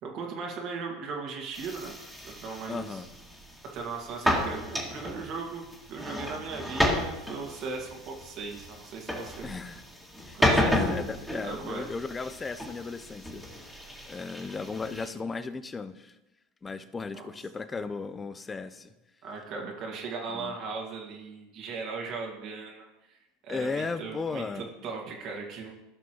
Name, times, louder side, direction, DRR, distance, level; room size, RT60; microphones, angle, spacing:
voice 1, 0.0-1.9 2.2-3.0 3.7-9.5 10.3-10.8 11.4-11.8 17.1-17.3 19.2-23.2 23.4-25.7, right 4 dB, 50° right, 0 dB, 2.0 m, -38 dB
sound 1, 1.5-15.1, left 1 dB, ahead, 2.3 m, -32 dB
voice 2, 2.7-3.1 9.4-9.8 10.2-16.2 16.6-18.9 20.1-20.6 23.5-24.7, left 4 dB, 20° left, 12 dB, 0.6 m, -36 dB
15.5 x 6.0 x 3.1 m, 0.97 s
hypercardioid pair, 95°, 0 cm